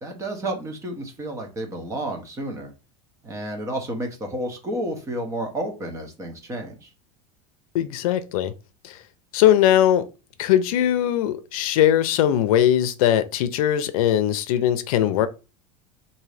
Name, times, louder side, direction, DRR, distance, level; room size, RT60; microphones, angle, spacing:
voice 1, 0.0-2.7 3.2-6.9, right 1 dB, 15° right, 0.7 m, -31 dB
voice 2, 7.7-8.5 8.8-9.0 9.3-10.1 10.4-15.3, left 11 dB, 85° left, 0.5 m, -20 dB
3.7 x 2.7 x 3.2 m
supercardioid pair, 165°, 18 cm